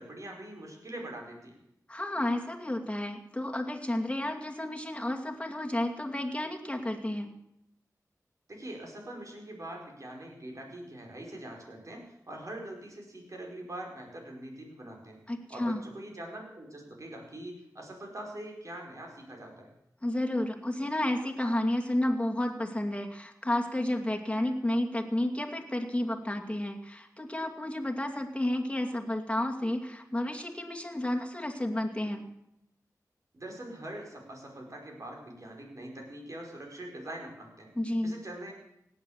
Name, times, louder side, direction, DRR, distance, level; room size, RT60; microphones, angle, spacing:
voice 1, 0.0-1.6 8.5-15.2 15.5-19.7 33.3-37.7 38.0-38.5, right 1 dB, 55° right, 0 dB, 4.9 m, -43 dB
voice 2, 1.9-7.3 15.3-15.8 20.0-32.3 37.8-38.1, left 1 dB, 15° left, 2 dB, 2.4 m, -31 dB
17.5 x 9.1 x 7.1 m, 0.80 s
cardioid pair, 50°, 7 cm